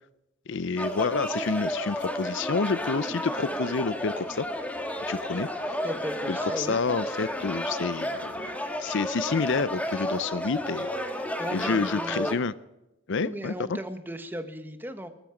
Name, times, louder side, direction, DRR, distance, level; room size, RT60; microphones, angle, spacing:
voice 1, 0.5-4.5 5.1-5.5 6.3-8.3 8.8-11.2 11.5-12.5 13.1-13.8, left 4 dB, 60° left, 17 dB, 0.5 m, -29 dB
sound 1, 0.8-12.3, left 1 dB, 5° left, 1.6 m, -32 dB
voice 2, 5.8-6.8 11.4-12.4 13.2-15.1, equal, 10° right, 8 dB, 1.2 m, -36 dB
20.0 x 13.5 x 5.0 m, 0.89 s
head